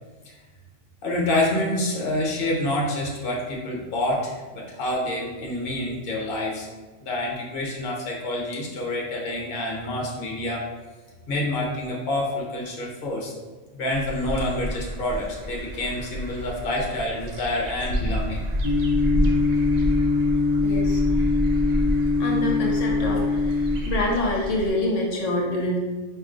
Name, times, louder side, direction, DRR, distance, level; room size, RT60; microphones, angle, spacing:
voice 1, 1.0-6.7 7.0-10.7 11.3-13.3 13.7-18.4, left 1 dB, 50° left, -2 dB, 1.0 m, -27 dB
sound 1, 13.9-24.7, equal, 65° right, 0.4 m, -29 dB
sound 2, 18.6-23.8, left 4 dB, 30° left, 0.7 m, -22 dB
voice 2, 20.6-21.0 22.2-25.8, left 1 dB, 80° left, -1 dB, 1.0 m, -26 dB
4.6 x 2.9 x 2.5 m, 1.3 s
omnidirectional pair, 1.2 m